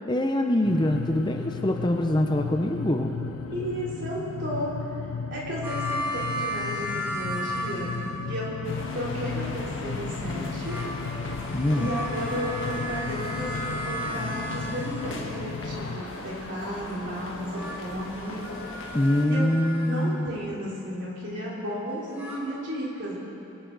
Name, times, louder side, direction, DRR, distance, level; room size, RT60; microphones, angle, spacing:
voice 1, 0.1-3.1 11.5-11.9 18.9-20.3, left 1 dB, 20° left, 4 dB, 0.6 m, -24 dB
sound 1, 0.6-16.0, left 5 dB, 85° left, 0.5 m, -35 dB
voice 2, 3.5-7.9 8.3-8.6 8.9-10.8 11.7-18.6 19.2-19.5 19.8-23.1, equal, 55° right, -5 dB, 3.5 m, -34 dB
sound 2, 5.6-8.5 10.2-15.4 17.3-20.1 21.9-22.4, equal, 10° right, 2.1 m, -35 dB
sound 3, 8.6-19.3, left 1 dB, 60° left, 1.5 m, -38 dB
22.0 x 12.5 x 4.0 m, 2.9 s
head